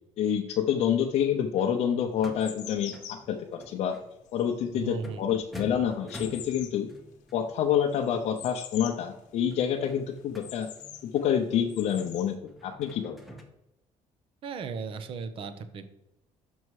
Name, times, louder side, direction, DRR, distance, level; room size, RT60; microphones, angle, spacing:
voice 1, 0.2-2.9 3.3-4.0 4.3-6.9 7.3-10.7 11.0-13.2, left 9 dB, 55° left, 2 dB, 0.6 m, -27 dB
sound 1, 1.2-13.4, equal, ahead, 0.9 m, -49 dB
sound 2, 1.3-1.4 2.0-9.1 9.4-9.5 9.9-11.1 11.6-12.3, left 10 dB, 75° left, 1.0 m, -46 dB
voice 2, 4.7-5.3 14.4-15.9, right 5 dB, 45° right, 11 dB, 0.7 m, -36 dB
6.2 x 5.5 x 4.7 m, 0.90 s
cardioid pair, 170°, 13 cm